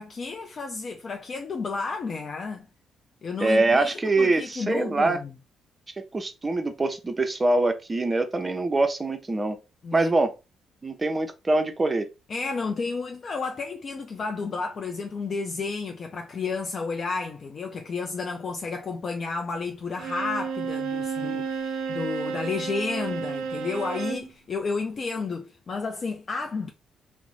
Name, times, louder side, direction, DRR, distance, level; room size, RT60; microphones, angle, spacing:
voice 1, 0.0-2.7 3.2-5.3 9.8-10.1 12.3-26.7, left 4 dB, 45° left, 0.4 m, -31 dB
voice 2, 3.4-5.2 6.1-9.6 9.9-10.3 10.8-12.1, right 2 dB, 25° right, 0.5 m, -24 dB
Bowed string instrument, 20.0-24.3, right 6 dB, 90° right, 0.4 m, -31 dB
2.4 x 2.0 x 3.0 m
cardioid pair, 90°, 0 cm